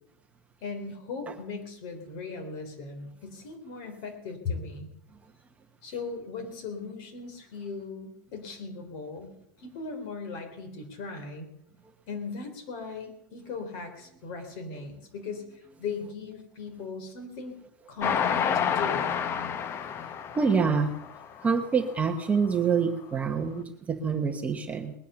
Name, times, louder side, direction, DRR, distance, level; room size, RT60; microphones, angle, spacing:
voice 1, 0.6-4.9 5.8-9.3 9.6-11.5 12.1-15.5 15.8-17.6 17.9-19.2, left 4 dB, 50° left, 7 dB, 3.9 m, -38 dB
Train, 18.0-21.5 22.0-22.1 22.4-22.5, left 7 dB, 25° left, 0.7 m, -29 dB
voice 2, 20.0-21.0 21.4-24.9, right 5 dB, 15° right, 5 dB, 0.9 m, -27 dB
20.0 x 9.2 x 6.9 m, 0.80 s
supercardioid pair, 160°, 10 cm